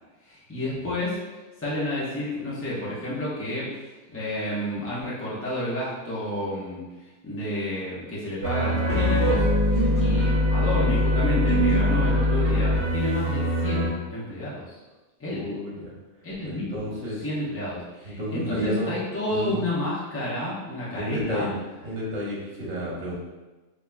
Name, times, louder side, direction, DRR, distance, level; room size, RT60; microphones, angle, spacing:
voice 1, 0.2-1.2 1.6-3.7 4.1-14.6 15.2-15.5 16.2-21.5, left 1 dB, 10° left, -8 dB, 0.9 m, -30 dB
sound 1, 8.4-13.9, equal, 40° right, 1.5 m, -22 dB
voice 2, 15.3-15.9 16.4-17.2 18.1-19.0 19.3-19.6 20.9-21.5 21.8-23.1, left 1 dB, 80° right, -5 dB, 1.6 m, -31 dB
5.7 x 3.0 x 2.3 m, 1.2 s
omnidirectional pair, 1.4 m